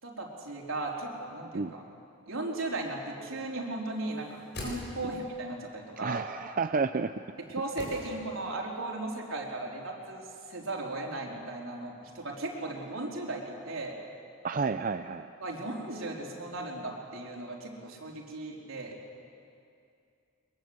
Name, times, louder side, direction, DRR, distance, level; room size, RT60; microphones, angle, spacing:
voice 1, 0.0-1.6 2.3-6.3 7.5-14.0 15.4-18.9, right 2 dB, 75° right, -2 dB, 4.1 m, -36 dB
sound 1, 4.2-5.4 7.8-8.7 8.9-9.0, left 1 dB, 55° left, 6.9 m, -42 dB
voice 2, 6.0-7.1 14.4-15.3, right 4 dB, 40° right, 9 dB, 0.5 m, -30 dB
23.0 x 22.0 x 8.0 m, 2.5 s
head